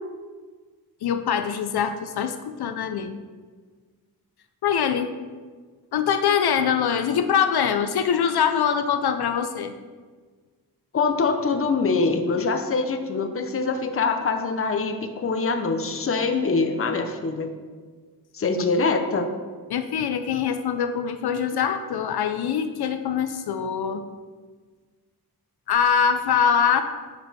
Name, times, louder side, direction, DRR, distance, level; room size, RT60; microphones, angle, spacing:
voice 1, 1.0-3.2 4.6-5.1 5.9-9.7 19.7-24.0 25.7-26.8, left 7 dB, 75° left, 9 dB, 0.6 m, -23 dB
voice 2, 10.9-17.5 18.3-19.3, left 4 dB, 35° left, 6 dB, 0.7 m, -24 dB
10.5 x 5.1 x 4.1 m, 1.5 s
wide cardioid pair, 170°, 39 cm